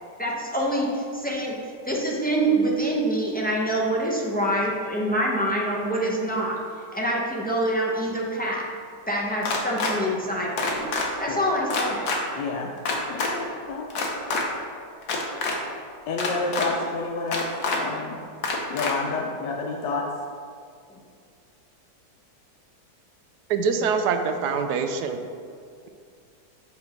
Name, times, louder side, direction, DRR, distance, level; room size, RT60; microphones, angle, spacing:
voice 1, 0.2-6.6 6.9-8.6 9.1-10.9 11.2-12.1, right 1 dB, 10° left, -4 dB, 0.5 m, -25 dB
sound 1, 9.4-9.9 10.6-11.1 11.7-12.2 12.9-13.3 13.9-14.4 15.0-15.6 16.2-16.7 17.3-17.8 18.4-18.9, left 3 dB, 65° left, 1.4 m, -26 dB
voice 2, 12.4-12.7 13.1-13.9 16.1-17.5 17.7-18.2 18.7-20.1, left 3 dB, 85° left, 0 dB, 1.4 m, -29 dB
voice 3, 23.5-25.2, right 5 dB, 75° right, 6 dB, 1.1 m, -24 dB
7.7 x 3.6 x 5.9 m, 2.3 s
omnidirectional pair, 1.9 m